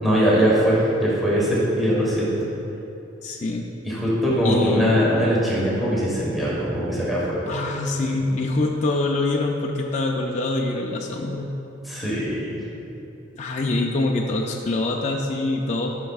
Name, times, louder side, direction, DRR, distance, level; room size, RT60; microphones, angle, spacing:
voice 1, 0.0-2.3 3.8-7.5 11.8-12.6, equal, ahead, -8 dB, 1.4 m, -21 dB
voice 2, 3.2-3.7 4.4-5.3 7.5-11.5 13.4-16.1, left 2 dB, 40° left, 0 dB, 0.4 m, -25 dB
12.5 x 5.8 x 2.4 m, 3.0 s
head